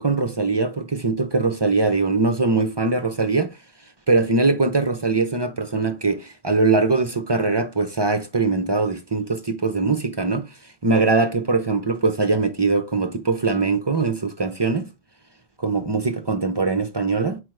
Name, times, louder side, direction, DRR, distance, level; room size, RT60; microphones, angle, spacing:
voice 1, 0.0-3.5 4.1-10.5 10.8-14.9 15.6-17.4, right 3 dB, 40° right, 0.3 m, -21 dB
6.1 x 4.8 x 3.2 m
omnidirectional pair, 1.4 m